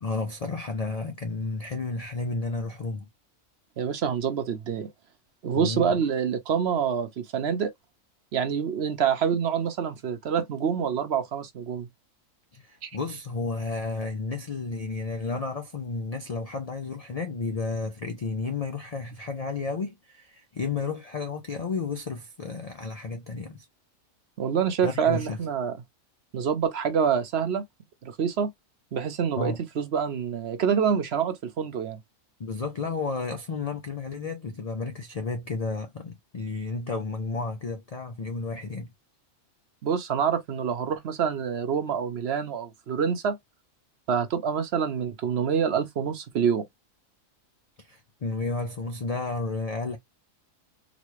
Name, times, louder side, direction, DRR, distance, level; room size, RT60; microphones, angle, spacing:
voice 1, 0.0-3.1 5.5-6.0 12.5-23.7 24.8-25.4 29.4-29.6 32.4-38.9 47.8-50.0, left 3 dB, 70° left, 0.3 m, -32 dB
voice 2, 3.8-4.9 5.4-7.7 8.3-11.9 12.8-12.9 24.4-25.7 26.3-27.6 28.0-28.5 28.9-32.0 39.8-43.4 44.1-46.7, right 7 dB, 60° right, 0.8 m, -26 dB
4.0 x 2.2 x 3.0 m
omnidirectional pair, 1.4 m